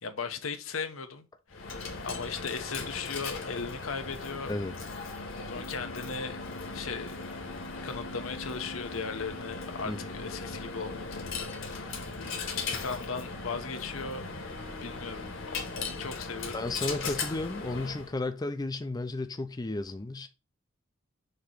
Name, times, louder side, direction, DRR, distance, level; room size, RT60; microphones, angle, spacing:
voice 1, 0.0-4.5 5.5-6.4 6.7-7.2 7.8-12.0 12.5-14.2 14.8-15.3 15.5-16.6 17.0-17.2, left 5 dB, 85° left, 1.0 m, -37 dB
Coin (dropping), 1.5-18.1, left 4 dB, 70° left, 1.6 m, -38 dB
voice 2, 16.5-20.3, left 2 dB, 20° left, 0.5 m, -33 dB
6.7 x 3.0 x 4.9 m
head